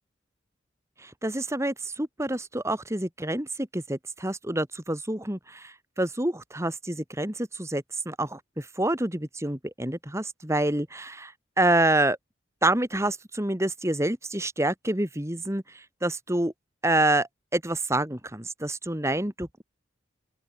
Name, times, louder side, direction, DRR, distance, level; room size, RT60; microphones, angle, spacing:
voice 1, 1.0-12.2 12.6-16.5 16.8-19.6, right 1 dB, 15° right, 2.5 m, -27 dB
open air
head